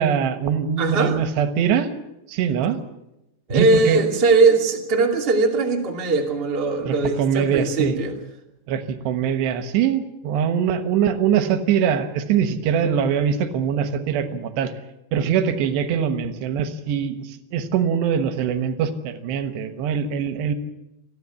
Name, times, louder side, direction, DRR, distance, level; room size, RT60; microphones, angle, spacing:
voice 1, 0.0-1.9 2.3-2.8 3.5-4.1 6.9-8.0 8.7-14.7 15.1-20.5, right 8 dB, 90° right, 10 dB, 3.5 m, -22 dB
voice 2, 0.8-1.2 3.5-8.1, right 3 dB, 20° right, 1 dB, 1.9 m, -20 dB
29.0 x 10.5 x 8.4 m, 0.91 s
omnidirectional pair, 4.8 m